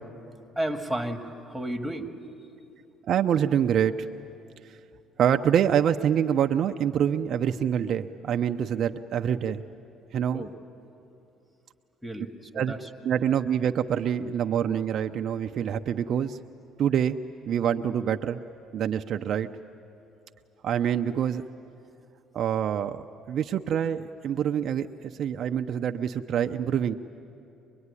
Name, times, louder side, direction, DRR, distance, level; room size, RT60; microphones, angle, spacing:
voice 1, 0.6-2.1 10.3-10.5 12.0-12.8, right 1 dB, ahead, 4 dB, 2.0 m, -32 dB
voice 2, 3.0-4.1 4.6-4.8 5.2-9.6 10.1-10.4 12.5-12.7 13.0-16.4 16.8-17.2 17.5-18.4 18.7-19.5 20.6-21.4 22.3-27.0, right 9 dB, 55° right, 6 dB, 0.6 m, -26 dB
24.5 x 22.0 x 9.8 m, 2.8 s
cardioid pair, 100°, 0 cm